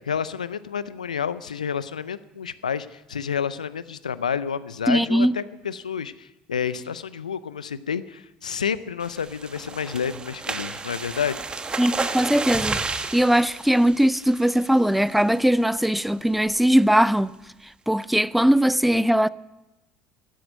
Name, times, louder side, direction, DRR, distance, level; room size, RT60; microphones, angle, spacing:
voice 1, 0.0-11.4, left 7 dB, 90° left, 0.5 m, -29 dB
voice 2, 4.9-5.3 11.8-12.8 13.1-17.3 17.9-19.3, equal, ahead, 0.4 m, -20 dB
sound 1, 9.0-14.8 15.2-15.5 15.8-15.9 16.3-16.6, right 4 dB, 25° right, 1.2 m, -32 dB
12.5 x 10.0 x 9.3 m
hypercardioid pair, 65°, 4 cm